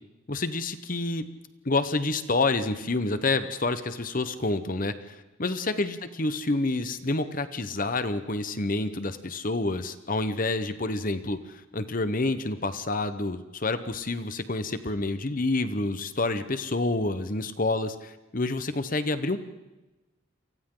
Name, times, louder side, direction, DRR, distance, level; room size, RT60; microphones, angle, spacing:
voice 1, 0.3-1.3 1.6-19.4, left 2 dB, 40° left, 11 dB, 1.1 m, -28 dB
30.0 x 24.5 x 3.9 m, 1.1 s
head